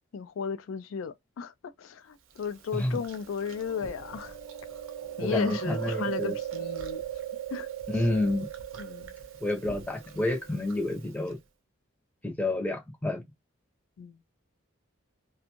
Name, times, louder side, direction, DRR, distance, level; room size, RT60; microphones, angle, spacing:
voice 1, 0.1-4.4 5.2-7.0 7.5-7.7 8.8-9.1 14.0-14.2, left 6 dB, 80° left, 0.3 m, -35 dB
Chewing mastication, 2.4-11.3, right 10 dB, 90° right, 0.7 m, -39 dB
voice 2, 5.2-6.3 7.9-8.5 9.4-11.4 12.2-13.2, left 2 dB, 10° left, 0.6 m, -29 dB
2.5 x 2.2 x 2.9 m
head